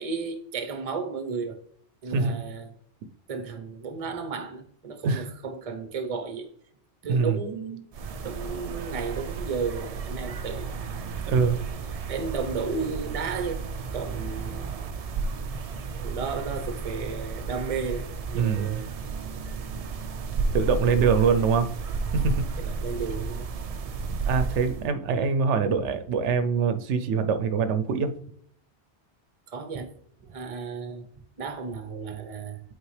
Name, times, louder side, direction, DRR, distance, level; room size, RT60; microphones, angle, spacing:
voice 1, 0.0-1.6 2.0-2.7 3.3-6.5 7.0-7.8 8.2-10.7 12.1-13.6 13.9-14.6 16.0-18.9 22.6-23.5 29.5-29.9 30.2-31.1 31.4-32.6, right 5 dB, 35° right, 0.7 m, -33 dB
sound 1, 7.9-24.9, right 4 dB, 55° right, 0.4 m, -32 dB
voice 2, 11.3-11.6 18.3-18.8 20.5-21.7 22.1-22.3 24.1-28.1, right 5 dB, 80° right, 0.9 m, -24 dB
8.2 x 3.9 x 3.2 m
omnidirectional pair, 1.2 m